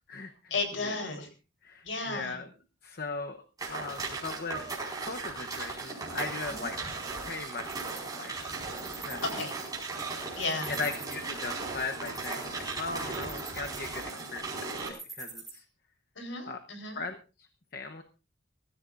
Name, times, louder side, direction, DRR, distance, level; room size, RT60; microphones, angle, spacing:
voice 1, 0.5-1.3 1.8-2.4 6.5-6.7 9.2-9.5 10.4-10.7 16.2-17.0, left 3 dB, 65° left, 5 dB, 4.1 m, -34 dB
voice 2, 1.6-2.5 2.8-3.4 3.7-4.6 5.0-6.8 7.1-8.5 9.0-9.2 10.8-15.6 16.5-16.6 17.0-17.5 17.7-18.0, left 4 dB, 50° left, 6 dB, 0.9 m, -38 dB
sound 1, 3.6-14.9, right 3 dB, 20° right, 4.9 m, -37 dB
Wild animals, 7.0-15.5, right 3 dB, ahead, 5.9 m, -47 dB
23.0 x 14.5 x 2.5 m, 0.33 s
head